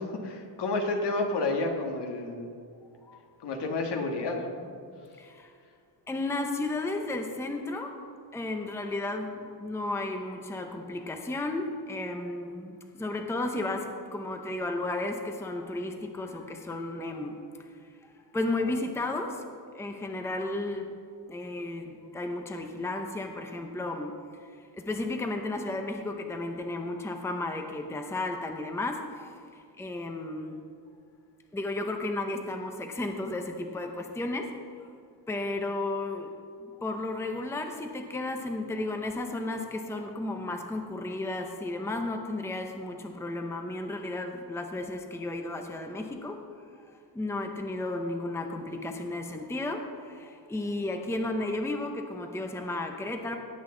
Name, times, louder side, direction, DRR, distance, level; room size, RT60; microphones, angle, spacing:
voice 1, 0.0-2.6 3.4-4.7, left 2 dB, 70° left, 3 dB, 1.6 m, -30 dB
voice 2, 6.1-7.9 8.3-9.3 9.6-12.7 13.0-13.8 14.1-17.3 18.3-19.3 19.8-20.8 21.3-24.1 24.9-29.3 29.8-30.6 31.5-34.5 35.3-36.3 36.8-46.4 47.2-49.8 50.5-53.4, left 2 dB, 5° left, 4 dB, 0.7 m, -33 dB
17.5 x 8.0 x 3.8 m, 2.3 s
wide cardioid pair, 160°, 43 cm